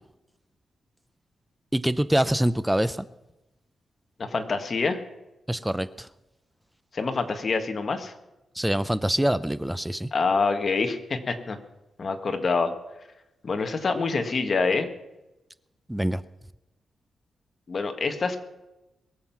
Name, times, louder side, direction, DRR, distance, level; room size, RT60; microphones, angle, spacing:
voice 1, 1.7-3.1 5.5-6.1 8.6-10.1 15.9-16.2, right 1 dB, 5° right, 15 dB, 0.5 m, -25 dB
voice 2, 4.2-5.0 6.9-8.1 10.1-11.6 12.0-12.7 13.4-14.9 17.7-18.4, left 4 dB, 40° left, 6 dB, 1.7 m, -26 dB
22.5 x 7.6 x 6.0 m, 0.98 s
wide cardioid pair, 140°, 0 cm